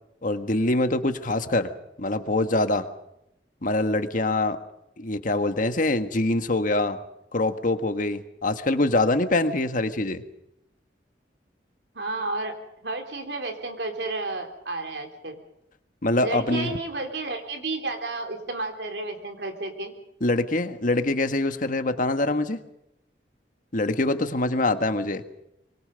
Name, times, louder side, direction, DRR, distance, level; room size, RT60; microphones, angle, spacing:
voice 1, 0.2-1.7 2.0-2.9 3.6-4.6 5.0-7.0 7.3-10.2 16.0-16.7 20.2-22.6 23.7-25.2, left 2 dB, 50° left, 8 dB, 1.6 m, -24 dB
voice 2, 11.9-12.5 12.8-15.4 16.2-19.9, right 2 dB, 70° right, 5 dB, 3.6 m, -31 dB
25.5 x 24.0 x 5.3 m, 0.83 s
head